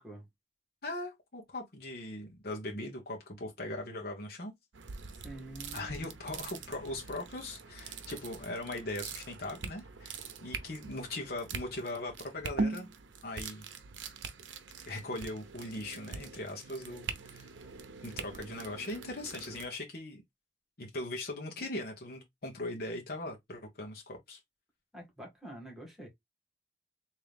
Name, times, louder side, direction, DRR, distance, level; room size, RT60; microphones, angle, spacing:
voice 1, 0.8-4.5 5.7-12.9 13.2-13.6 14.0-14.1 14.8-17.5 18.0-20.2 20.8-24.4, left 2 dB, 55° left, 1.0 m, -40 dB
sound 1, 4.7-19.7, right 4 dB, 85° right, 0.7 m, -42 dB
voice 2, 5.2-6.1 24.9-26.1, right 1 dB, ahead, 1.8 m, -47 dB
3.6 x 2.8 x 3.3 m
head